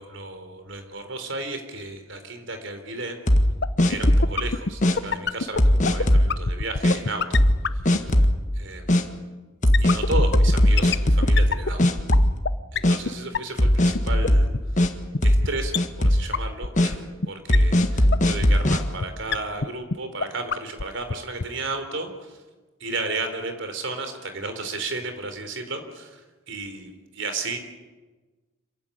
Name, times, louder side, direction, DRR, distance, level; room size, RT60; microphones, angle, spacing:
voice 1, 0.0-3.2 3.9-7.4 7.8-8.1 8.6-8.8 9.8-12.0 12.7-14.5 15.2-17.0 17.3-22.4 22.8-27.6, right 3 dB, 65° right, 7 dB, 3.8 m, -33 dB
sound 1, 3.3-4.4 4.8-5.0 5.6-6.3 6.8-7.0 7.3-7.6 7.9-8.4 8.9-9.0 9.6-11.5 11.8-12.5 12.8-13.0 13.6-14.9 15.2-15.5 15.8-16.3 16.8-16.9 17.5-18.8, left 1 dB, 35° left, 1.6 m, -18 dB
sound 2, 3.6-8.3 9.7-12.5 12.8-12.9 13.1-13.2 13.3-13.4 13.6-13.7 14.0-14.1 14.2-14.3 14.5-14.6 14.8-14.9 15.1-15.2 15.4-15.5 15.7-15.8 16.0-16.1 16.3-16.4 16.6-17.0 17.2-17.3 17.5-17.6 17.8-17.9 18.1-18.2 18.4-18.5 18.7-18.8 19.0-19.1 19.3-19.4 19.6-19.7 19.9-20.0 20.2-20.3 20.5-20.8 21.1-21.2 21.4-21.5, left 4 dB, 55° left, 0.7 m, -24 dB
26.5 x 15.5 x 9.9 m, 1.2 s
head